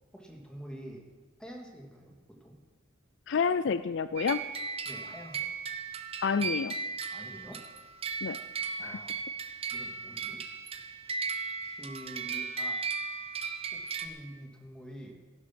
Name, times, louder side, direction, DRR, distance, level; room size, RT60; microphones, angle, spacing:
voice 1, 0.1-1.0 1.4-2.2 2.4-2.5 4.9-5.5 7.1-7.6 8.8-9.3 9.7-10.4 11.6-12.8 13.7-15.1, equal, 5° left, 0 dB, 2.3 m, -46 dB
voice 2, 3.3-4.4 6.2-6.7 8.2-8.4 8.8-9.0, left 5 dB, 60° left, 14 dB, 0.4 m, -29 dB
sound 1, 4.2-14.1, right 5 dB, 30° right, 0.9 m, -36 dB
14.5 x 12.0 x 6.1 m, 1.3 s
head